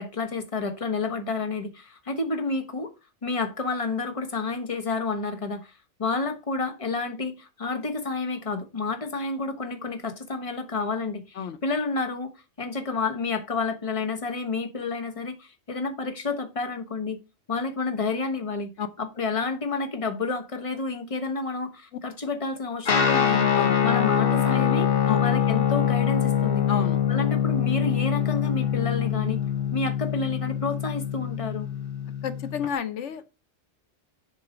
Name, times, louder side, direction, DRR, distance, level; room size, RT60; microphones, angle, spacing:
voice 1, 0.0-2.9 3.2-5.7 6.0-12.3 12.6-17.2 17.5-18.7 19.0-23.5 23.8-24.9 25.2-26.6 27.1-29.4 29.7-31.7, left 3 dB, 30° left, 1.2 m, -30 dB
Guitar, 22.8-32.7, left 9 dB, 55° left, 1.1 m, -24 dB
voice 2, 26.7-27.0 32.2-33.3, left 7 dB, 90° left, 1.2 m, -30 dB
7.4 x 4.7 x 5.1 m
omnidirectional pair, 1.2 m